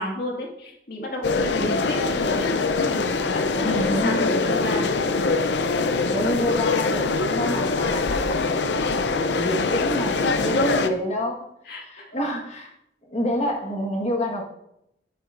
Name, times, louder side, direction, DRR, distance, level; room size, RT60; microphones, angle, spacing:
voice 1, 0.0-2.5 2.9-5.0 10.6-10.8 11.7-12.1, equal, 60° left, 0 dB, 2.0 m, -31 dB
sound 1, 1.2-10.9, left 3 dB, 75° left, 0.6 m, -23 dB
voice 2, 3.6-4.3 6.1-10.6 10.8-11.5 11.8-12.7 13.1-14.4, left 1 dB, 40° left, 1 dB, 1.5 m, -28 dB
10.5 x 7.7 x 2.6 m, 0.80 s
head